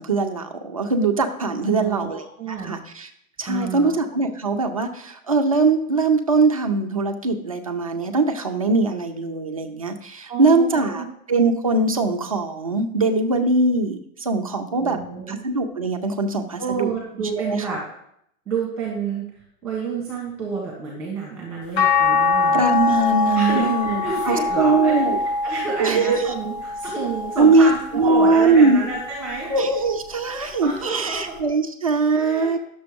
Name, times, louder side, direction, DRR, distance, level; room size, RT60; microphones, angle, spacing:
voice 1, 0.0-3.1 3.4-15.0 15.3-16.9 17.5-17.8 22.5-25.2 25.8-26.3 27.4-28.8 29.5-32.6, right 3 dB, 25° right, 4 dB, 0.4 m, -21 dB
voice 2, 1.6-2.8 3.5-4.0 10.3-11.1 14.7-15.4 16.6-17.8 18.5-19.2 19.6-22.6 23.3-25.0 25.4-29.5 30.4-31.3 32.1-32.6, right 4 dB, 5° right, -3 dB, 1.5 m, -29 dB
sound 1, 21.8-28.1 28.6-30.0 31.4-31.5, left 4 dB, 45° left, 1.8 m, -24 dB
11.0 x 6.8 x 5.1 m, 0.73 s
supercardioid pair, 180°, 43 cm